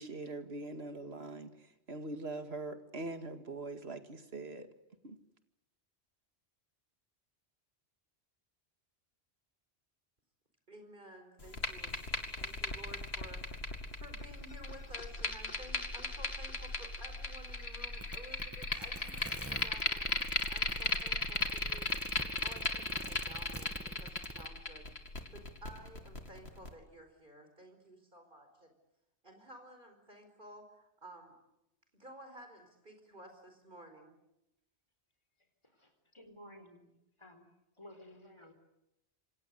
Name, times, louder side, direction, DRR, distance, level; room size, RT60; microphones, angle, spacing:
voice 1, 0.0-1.5 1.9-4.7 5.0-5.2, right 2 dB, 70° right, 8 dB, 2.4 m, -42 dB
voice 2, 10.7-12.0 12.3-13.5 14.0-20.1 20.5-21.9 22.4-24.9 25.3-28.7 29.2-31.4 31.9-34.1, right 1 dB, 50° right, 6 dB, 5.0 m, -53 dB
sound 1, 11.4-26.7, left 3 dB, 70° left, 2.8 m, -37 dB
sound 2, 18.0-24.5, right 1 dB, 15° right, 1.3 m, -45 dB
voice 3, 35.6-37.5 37.8-38.5, left 1 dB, 25° left, 7 dB, 4.2 m, -55 dB
27.0 x 26.5 x 8.2 m, 0.86 s
omnidirectional pair, 1.1 m